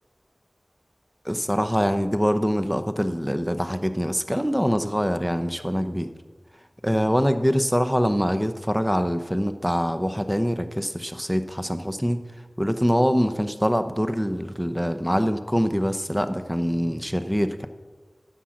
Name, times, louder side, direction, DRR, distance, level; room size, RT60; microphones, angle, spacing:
voice 1, 1.2-6.1 6.8-12.2 12.6-17.7, equal, 5° right, 9 dB, 0.7 m, -24 dB
9.6 x 7.3 x 6.4 m, 1.3 s
wide cardioid pair, 40°, 0 cm